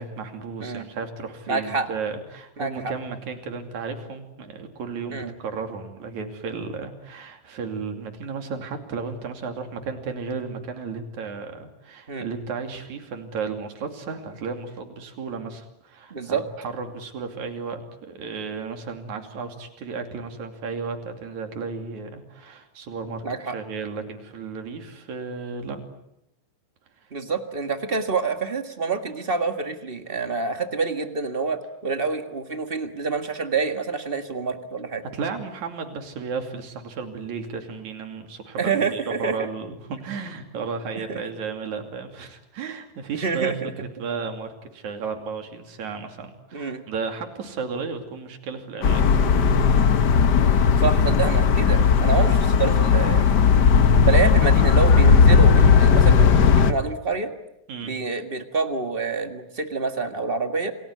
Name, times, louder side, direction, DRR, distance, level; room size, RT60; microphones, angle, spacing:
voice 1, 0.0-25.8 35.1-49.5 57.7-57.9, right 5 dB, 70° right, 5 dB, 4.1 m, -34 dB
voice 2, 1.5-1.9 2.6-2.9 5.1-5.3 12.1-12.3 16.1-16.4 23.2-23.6 27.1-35.0 38.6-39.4 40.9-41.2 43.1-43.7 46.5-46.8 50.8-53.3 54.0-57.3 57.8-60.7, right 4 dB, 25° right, 7 dB, 1.3 m, -27 dB
sound 1, 48.8-56.7, left 6 dB, 60° left, 1.1 m, -16 dB
28.5 x 20.0 x 9.5 m, 0.85 s
omnidirectional pair, 3.5 m